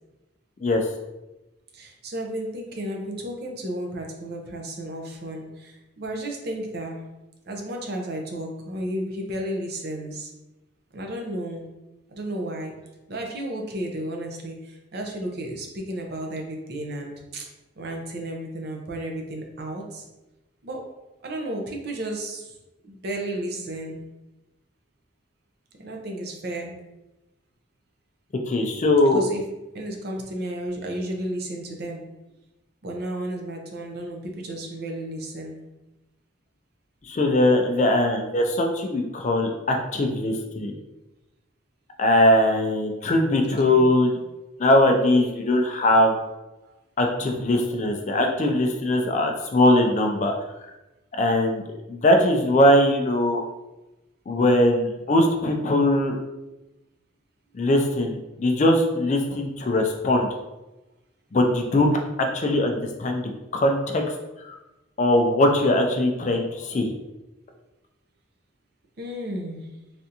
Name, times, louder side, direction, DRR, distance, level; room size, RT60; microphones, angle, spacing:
voice 1, 1.7-7.0 7.5-10.3 10.9-11.7 12.1-12.7 13.1-17.5 17.8-20.0 20.6-20.8 21.2-22.6 22.8-24.0 25.8-26.8 29.1-29.4 29.7-32.0 32.8-35.6 43.0-43.1 43.3-44.0 46.6-46.8 53.4-53.5 69.0-69.7, right 1 dB, 50° right, 1 dB, 0.5 m, -33 dB
voice 2, 28.5-29.2 37.1-40.7 42.0-44.1 44.6-46.1 47.0-50.3 51.2-51.6 51.9-53.5 54.3-56.2 57.5-60.3 61.3-64.0 64.4-64.6 65.0-66.9, left 1 dB, 35° left, 3 dB, 0.3 m, -21 dB
3.3 x 2.5 x 2.7 m, 1.0 s
head